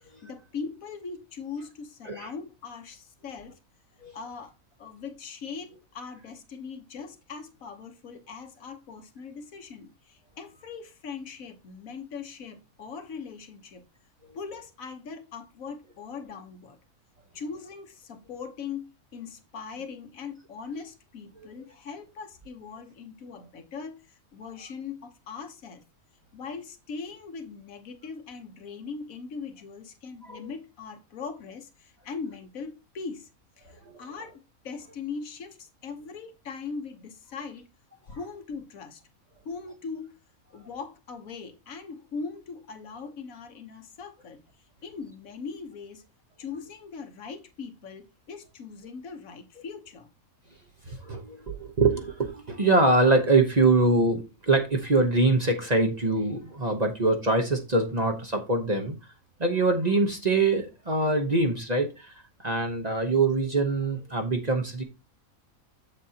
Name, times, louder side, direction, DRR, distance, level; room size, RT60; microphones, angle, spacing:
voice 1, 0.0-3.6 4.1-4.5 4.8-13.8 14.3-16.8 17.3-18.8 19.1-25.8 26.3-33.3 33.6-34.3 34.6-37.6 38.1-39.0 39.4-40.2 40.5-44.4 44.8-46.0 46.4-50.1, left 5 dB, 70° left, 1.4 m, -40 dB
voice 2, 33.7-34.0 50.9-59.0 59.4-62.1 62.4-64.8, right 3 dB, 35° right, 1.0 m, -24 dB
7.5 x 7.3 x 2.8 m
omnidirectional pair, 1.5 m